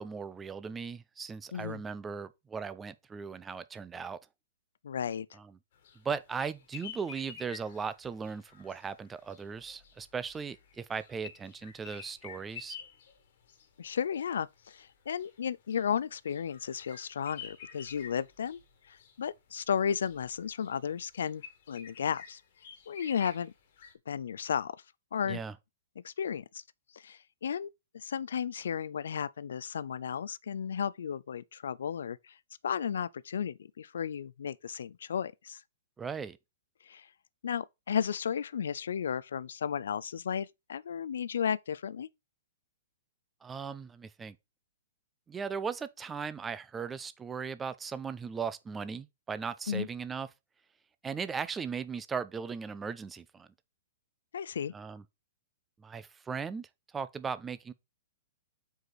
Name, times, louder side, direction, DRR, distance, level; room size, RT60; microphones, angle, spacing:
voice 1, 0.0-4.2 5.3-5.6 6.0-12.8 25.3-25.5 36.0-36.4 43.4-44.4 45.3-50.3 51.0-53.5 54.7-55.0 55.8-56.7 56.9-57.7, right 6 dB, 10° right, 0.4 m, -38 dB
voice 2, 1.5-1.8 4.8-5.3 13.8-18.6 18.9-22.4 22.9-23.5 24.1-24.8 25.1-25.4 26.0-26.6 26.9-32.3 32.6-35.6 36.9-37.1 37.4-42.1 49.7-49.9 54.3-54.7, left 8 dB, 80° left, 0.4 m, -34 dB
sound 1, 5.7-23.9, left 7 dB, 45° left, 1.6 m, -51 dB
7.8 x 4.7 x 4.1 m
hypercardioid pair, 175°, 0 cm